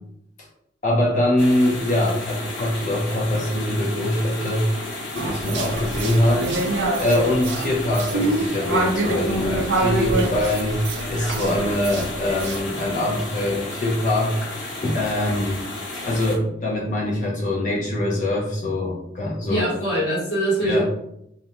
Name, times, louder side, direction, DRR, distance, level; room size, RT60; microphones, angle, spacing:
voice 1, 0.8-4.7 5.1-6.6 7.0-10.8 11.1-15.6 16.0-19.7 20.6-20.8, left 1 dB, 40° left, -3 dB, 0.5 m, -23 dB
sound 1, 1.4-16.4, left 2 dB, 90° left, 0.9 m, -33 dB
sound 2, 5.2-12.6, right 2 dB, 65° right, 0.4 m, -26 dB
voice 2, 19.5-20.8, right 1 dB, 60° left, -5 dB, 1.1 m, -22 dB
2.5 x 2.1 x 2.8 m, 0.77 s
head